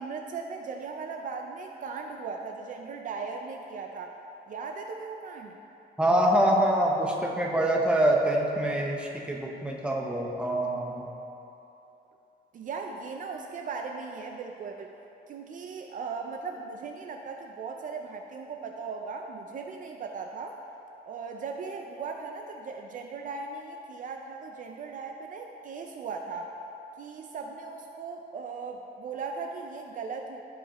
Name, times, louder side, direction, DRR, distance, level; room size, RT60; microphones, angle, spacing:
voice 1, 0.0-4.1 4.5-5.6 12.5-14.9 15.3-20.6 21.1-26.5 27.0-30.4, right 4 dB, 50° right, 3 dB, 0.5 m, -38 dB
voice 2, 6.0-11.1, right 1 dB, 5° right, -1 dB, 0.8 m, -25 dB
14.5 x 5.1 x 3.0 m, 3.0 s
cardioid pair, 170°, 18 cm